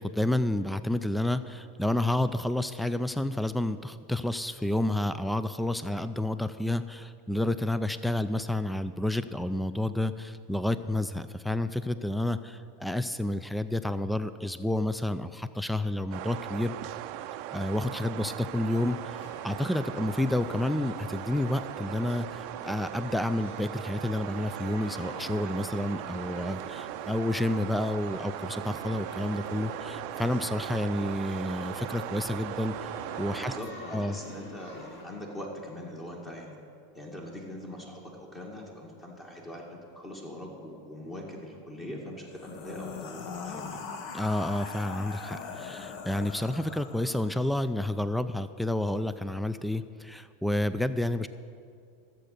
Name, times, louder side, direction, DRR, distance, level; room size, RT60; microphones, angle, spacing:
voice 1, 0.0-16.8 17.5-32.9 33.2-33.5 33.9-34.2 44.1-51.3, left 1 dB, 5° left, 13 dB, 0.4 m, -30 dB
sound 1, 16.1-33.6, right 13 dB, 55° right, 0.5 m, -39 dB
sound 2, 18.7-35.0, equal, 85° left, 3.9 m, -47 dB
voice 2, 33.3-36.6 36.9-43.8, left 1 dB, 20° left, -1 dB, 2.0 m, -42 dB
sound 3, 42.3-47.5, left 5 dB, 50° left, 1.1 m, -41 dB
14.5 x 7.7 x 6.6 m, 2.3 s
supercardioid pair, 125°, 0 cm